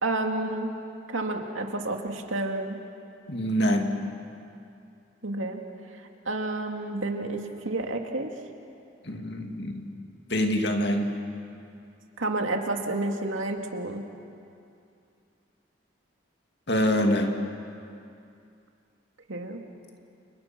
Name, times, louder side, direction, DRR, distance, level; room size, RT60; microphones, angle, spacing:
voice 1, 0.0-0.7 1.1-2.8 5.2-5.6 6.3-8.3 12.2-14.0 19.3-19.6, right 2 dB, 85° right, 3 dB, 2.4 m, -30 dB
voice 2, 3.3-4.1 9.0-9.8 10.3-11.2 16.7-17.4, equal, 55° left, 3 dB, 2.4 m, -25 dB
29.5 x 29.5 x 6.1 m, 2.5 s
head